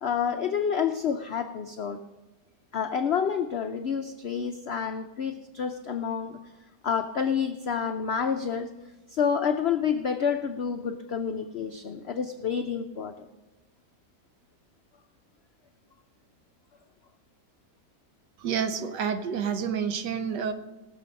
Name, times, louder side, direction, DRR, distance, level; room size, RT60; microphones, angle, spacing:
voice 1, 0.0-2.0 2.7-6.4 6.8-8.7 9.1-13.3, left 7 dB, 80° left, 7 dB, 0.5 m, -29 dB
voice 2, 18.4-20.5, right 7 dB, 85° right, 9 dB, 1.5 m, -29 dB
18.0 x 7.0 x 5.2 m, 1.1 s
omnidirectional pair, 1.8 m